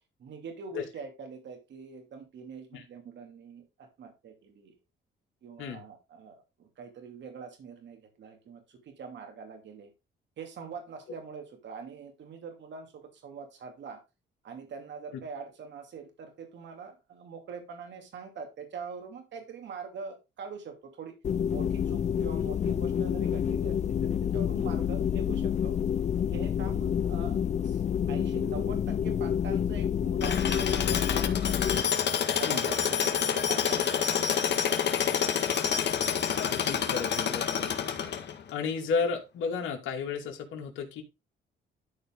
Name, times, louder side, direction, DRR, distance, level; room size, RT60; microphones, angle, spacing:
voice 1, 0.2-4.7 5.4-9.9 10.4-14.0 14.4-21.1 21.5-25.8 26.3-27.8 28.1-31.6 32.3-34.5, right 5 dB, 65° right, 4 dB, 2.7 m, -44 dB
sound 1, 21.2-31.8, left 8 dB, 35° left, 0.4 m, -28 dB
Tools, 30.2-38.5, left 8 dB, 60° left, 1.7 m, -28 dB
voice 2, 36.3-37.9 38.5-41.0, left 5 dB, 80° left, 1 dB, 2.5 m, -33 dB
12.5 x 4.3 x 3.9 m, 0.26 s
cardioid pair, 90°, 20 cm